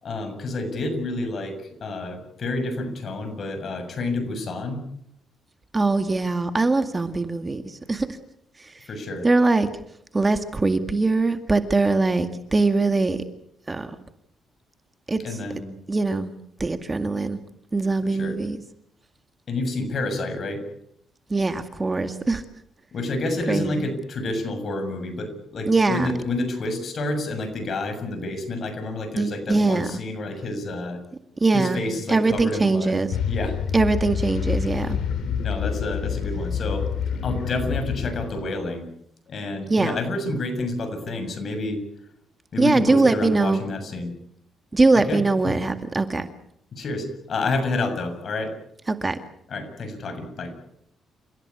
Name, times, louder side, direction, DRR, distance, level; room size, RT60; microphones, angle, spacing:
voice 1, 0.0-4.8 8.9-9.3 15.2-15.8 18.0-18.4 19.5-20.7 22.9-31.0 31.5-33.6 35.4-36.9 37.2-38.9 39.3-41.8 42.5-44.1 44.9-45.5 46.7-48.5 49.5-50.5, left 2 dB, 50° left, 8 dB, 7.1 m, -29 dB
voice 2, 5.7-8.1 8.6-8.9 9.2-9.7 10.1-13.2 13.7-14.0 15.1-15.2 15.9-16.3 16.6-17.4 17.7-18.6 21.3-22.4 23.5-23.9 25.7-26.1 29.2-29.9 31.4-31.8 32.1-33.1 33.7-35.0 39.7-40.0 42.6-43.6 44.7-46.3 48.9-49.2, right 3 dB, 25° right, 9 dB, 2.0 m, -22 dB
sound 1, 33.1-38.5, left 7 dB, 70° left, 4.0 m, -27 dB
29.5 x 16.5 x 8.5 m, 0.73 s
cardioid pair, 90°, 0 cm